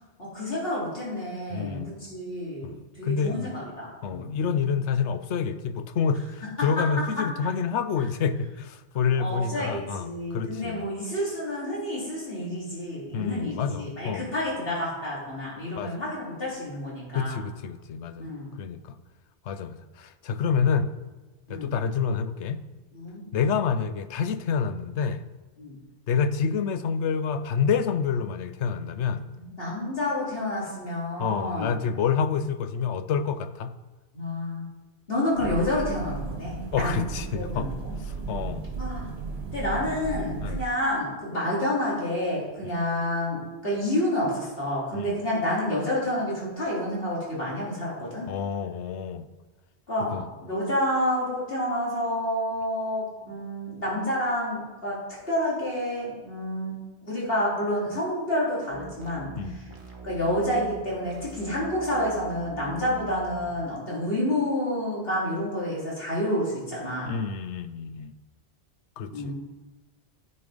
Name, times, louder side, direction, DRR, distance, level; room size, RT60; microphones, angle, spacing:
voice 1, 0.2-4.2 6.6-7.1 7.4-7.5 9.2-17.4 18.2-18.6 21.5-21.8 22.9-23.2 25.6-25.8 29.3-31.8 34.1-34.7 35.1-37.0 37.3-37.9 38.8-39.1 39.5-48.3 49.9-55.0 55.3-56.8 57.0-59.7 60.0-67.1 69.1-69.3, left 1 dB, 55° left, -6 dB, 3.7 m, -29 dB
voice 2, 1.5-1.9 2.6-3.5 4.0-10.9 13.1-14.3 15.8-15.9 17.1-18.3 18.6-18.9 19.5-20.9 21.5-22.6 23.3-25.2 26.1-29.2 31.2-33.7 36.7-37.7 38.1-38.6 40.4-40.6 42.6-42.8 44.9-45.2 48.3-49.3 50.1-50.3 59.4-59.6 67.1-68.1 69.0-69.3, left 6 dB, 90° left, 11 dB, 1.0 m, -28 dB
sound 1, 35.4-40.6, right 4 dB, 70° right, 1.3 m, -34 dB
sound 2, 58.7-63.5, right 5 dB, 50° right, 1.8 m, -42 dB
9.2 x 6.9 x 5.1 m, 1.2 s
omnidirectional pair, 1.1 m